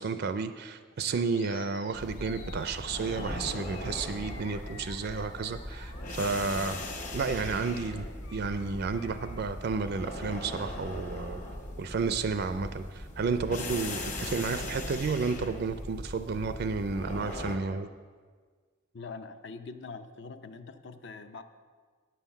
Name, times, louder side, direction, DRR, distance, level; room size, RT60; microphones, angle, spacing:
voice 1, 0.0-6.8 7.1-8.1 8.3-11.4 11.8-17.9, right 4 dB, 50° right, 10 dB, 0.4 m, -32 dB
Animal, 1.3-9.5, left 4 dB, 70° left, 0.9 m, -51 dB
sound 1, 1.9-17.6, left 1 dB, 35° left, 1.1 m, -39 dB
voice 2, 18.9-21.4, left 4 dB, 55° left, 10 dB, 0.5 m, -43 dB
9.3 x 5.7 x 7.2 m, 1.5 s
head